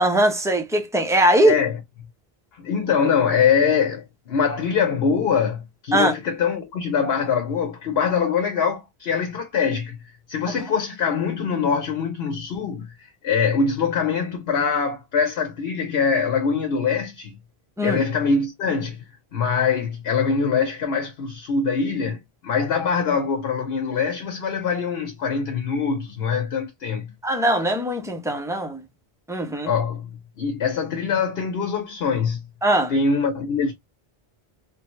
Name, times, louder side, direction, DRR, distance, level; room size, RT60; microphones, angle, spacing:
voice 1, 0.0-1.6 5.9-6.1 17.8-18.0 27.2-28.8 29.3-29.7 32.6-32.9, right 1 dB, 5° right, 0.4 m, -20 dB
voice 2, 2.5-12.9 13.2-17.4 17.8-27.1 29.7-30.1 30.4-32.4 32.9-33.7, left 6 dB, 70° left, 1.0 m, -23 dB
3.2 x 2.2 x 2.9 m
omnidirectional pair, 1.1 m